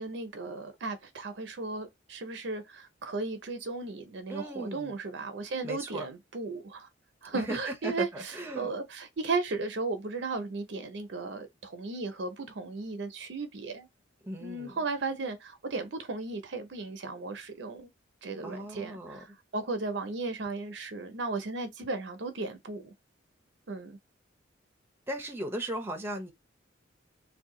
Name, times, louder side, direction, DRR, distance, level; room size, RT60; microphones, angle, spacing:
voice 1, 0.0-6.9 7.2-13.9 14.4-17.9 18.2-19.3 19.5-22.9 23.7-24.0, right 3 dB, 65° right, 0.6 m, -35 dB
voice 2, 4.3-5.0 5.6-6.1 7.3-8.7 14.2-14.8 18.4-19.2 25.1-26.3, right 1 dB, 10° right, 0.6 m, -37 dB
2.7 x 2.3 x 3.6 m
head